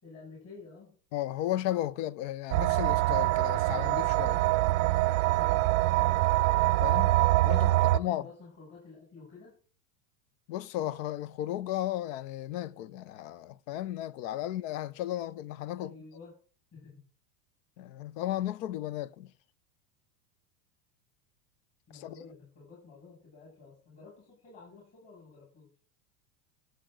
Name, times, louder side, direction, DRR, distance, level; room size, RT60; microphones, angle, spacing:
voice 1, 0.0-0.9 5.3-5.6 7.3-9.6 15.8-16.3 16.7-17.0 21.9-25.7, left 4 dB, 35° left, 6.8 m, -51 dB
voice 2, 1.1-4.5 6.8-8.2 10.5-15.9 17.8-19.3 21.9-22.2, left 13 dB, 55° left, 0.7 m, -34 dB
sound 1, 2.5-8.0, right 18 dB, 60° right, 0.6 m, -24 dB
15.0 x 7.9 x 3.9 m
hypercardioid pair, 100°, 45 cm